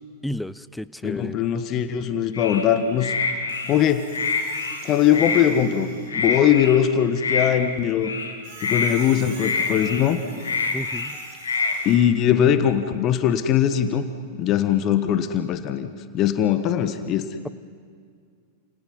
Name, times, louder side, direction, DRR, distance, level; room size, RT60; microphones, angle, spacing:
voice 1, 0.2-1.4 10.7-11.1, left 1 dB, 5° left, 17 dB, 0.7 m, -32 dB
voice 2, 1.0-3.1 3.7-4.1 4.8-8.1 8.6-10.2 11.8-14.1 14.4-15.9 16.1-17.3, left 9 dB, 35° left, 10 dB, 1.4 m, -21 dB
sound 1, 2.3-2.7 3.0-3.7 4.1-4.8 5.1-5.4 6.1-6.8 7.2-7.5 8.0-8.3 8.6-8.9 9.4-10.0 10.4-11.1 11.4-11.8, left 4 dB, 70° left, 2.9 m, -26 dB
Squeak, 3.5-6.2 8.4-11.9, right 4 dB, 45° right, 6.2 m, -44 dB
29.5 x 28.0 x 5.6 m, 2.2 s
figure-of-eight pair, 90°, 0 cm